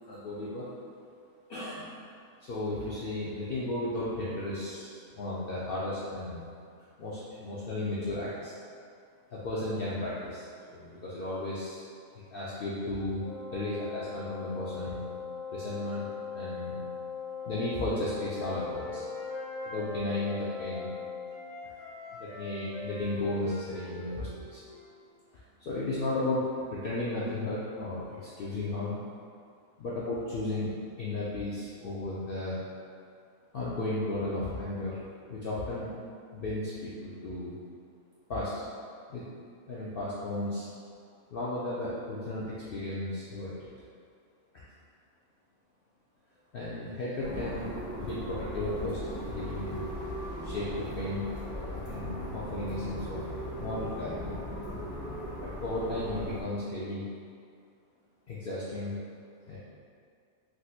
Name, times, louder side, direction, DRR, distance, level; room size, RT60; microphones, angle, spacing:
voice 1, 0.1-0.7 1.5-1.9 2.4-6.4 7.0-8.5 9.3-11.8 12.3-13.2 13.5-15.1 15.5-16.1 16.3-16.8 17.5-19.0 19.7-20.9 22.1-24.6 25.6-29.0 29.8-32.6 33.5-35.0 35.3-35.9 36.3-37.5 38.3-38.5 39.1-39.2 39.7-40.7 41.3-43.7 46.5-49.0 49.3-49.8 50.4-51.2 51.9-53.3 53.6-54.4 55.4-57.0 58.3-59.0 59.5-59.6, left 2 dB, 70° left, -8 dB, 0.5 m, -34 dB
Wind instrument woodwind instrument, 13.2-21.4, left 6 dB, 40° right, 0.5 m, -40 dB
Wind instrument woodwind instrument 2, 17.4-20.9 21.3-25.0, right 1 dB, 80° right, 1.2 m, -44 dB
sound 1, 47.2-56.4, equal, 5° right, 0.7 m, -38 dB
3.6 x 2.6 x 2.4 m, 2.3 s
omnidirectional pair, 1.5 m